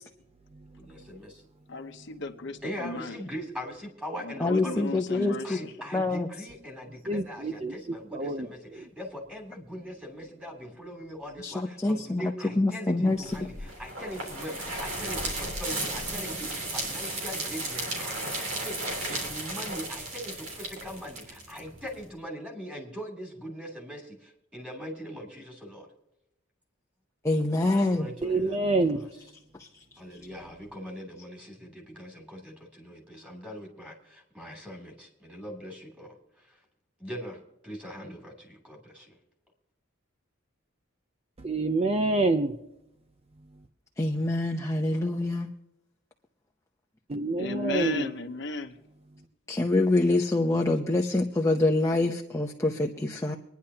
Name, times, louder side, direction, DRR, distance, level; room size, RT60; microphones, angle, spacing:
voice 1, 0.8-1.4 2.6-25.9 27.9-29.1 30.0-36.6 37.0-39.2, equal, 5° right, 0 dB, 3.0 m, -41 dB
voice 2, 1.7-3.2 4.2-5.7 47.4-48.8, left 3 dB, 60° left, 4 dB, 1.0 m, -35 dB
voice 3, 4.4-5.6 5.9-6.3 11.4-13.2 27.2-28.1 29.6-29.7 44.0-45.5 49.5-53.4, left 2 dB, 15° left, 1 dB, 0.8 m, -26 dB
voice 4, 7.1-7.7 8.1-8.5 8.7-8.8 28.2-29.0 41.4-42.5 47.1-48.1, right 2 dB, 30° right, 8 dB, 0.5 m, -27 dB
sound 1, 13.2-22.1, right 2 dB, 80° right, 3.5 m, -34 dB
24.5 x 10.5 x 2.8 m, 0.85 s
head